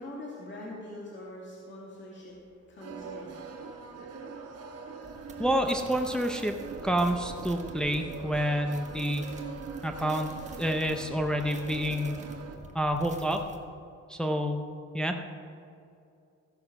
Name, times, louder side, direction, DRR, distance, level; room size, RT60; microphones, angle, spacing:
voice 1, 0.0-4.7, left 1 dB, 40° left, -5 dB, 2.4 m, -44 dB
sound 1, 2.8-12.6, right 5 dB, 55° right, 1.6 m, -42 dB
sound 2, 5.0-13.6, right 2 dB, 25° right, 1.2 m, -47 dB
voice 2, 5.4-6.5 6.8-9.2 9.8-10.3 10.6-12.2 12.7-13.4 14.1-14.6 14.9-15.2, equal, 5° left, 4 dB, 0.7 m, -28 dB
15.0 x 6.3 x 6.0 m, 2.5 s
cardioid pair, 90°, 30 cm